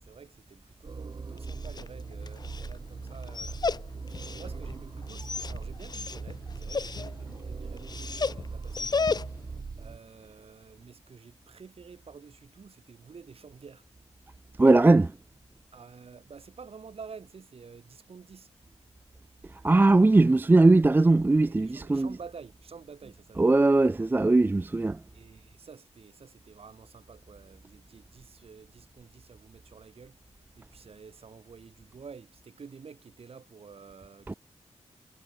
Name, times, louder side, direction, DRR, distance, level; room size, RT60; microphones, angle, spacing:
voice 1, 0.0-3.6 4.1-9.3 9.8-13.8 15.7-18.5 21.3-23.6 25.1-30.2 30.5-34.4, right 5 dB, 55° right, 3.9 m, -49 dB
sound 1, 0.8-10.0, right 4 dB, 35° right, 1.0 m, -40 dB
Dog, 1.3-9.6, left 4 dB, 35° left, 0.9 m, -35 dB
voice 2, 14.6-15.1 19.6-22.1 23.4-25.0 34.3-34.4, right 2 dB, 15° right, 0.4 m, -20 dB
cardioid pair, 80°, 12 cm